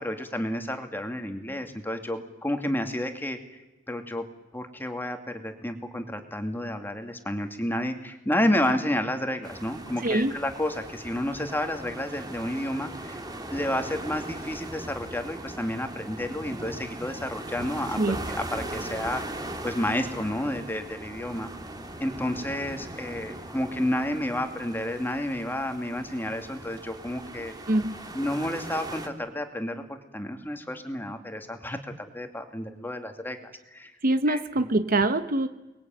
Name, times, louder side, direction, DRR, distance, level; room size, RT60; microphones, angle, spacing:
voice 1, 0.0-3.4 3.9-4.3 4.5-18.0 18.3-21.5 22.0-27.5 28.1-33.9 34.3-34.4, left 1 dB, 10° left, 6 dB, 2.4 m, -31 dB
sound 1, 9.4-29.1, right 1 dB, 20° right, 2.3 m, -39 dB
voice 2, 10.0-10.3 18.0-18.2 27.7-27.9 34.0-35.5, right 2 dB, 50° right, 10 dB, 1.1 m, -24 dB
29.5 x 21.0 x 9.1 m, 1.1 s
head